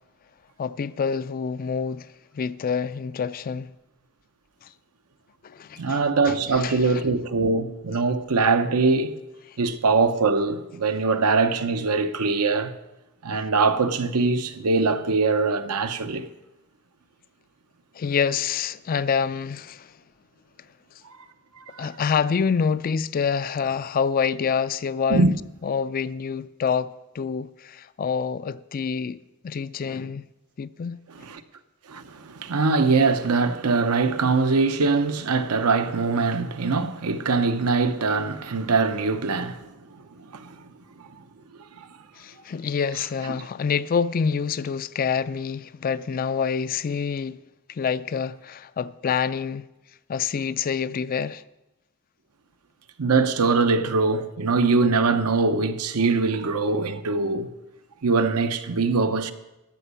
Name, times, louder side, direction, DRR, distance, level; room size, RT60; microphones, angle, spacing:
voice 1, 0.6-2.1 2.3-3.7 4.6-4.7 5.4-7.0 9.5-9.6 17.9-19.9 21.8-25.3 25.6-29.2 29.4-30.3 30.6-31.0 42.2-47.4 47.7-49.6 50.1-51.4, left 6 dB, 40° left, 0.3 m, -27 dB
voice 2, 5.8-9.1 9.6-12.7 13.2-16.3 21.7-21.9 25.1-25.3 31.2-31.4 31.9-39.7 40.3-40.5 41.0-41.1 41.8-41.9 53.0-57.5 58.0-59.3, right 4 dB, 85° right, 0.8 m, -22 dB
13.5 x 6.2 x 8.2 m
head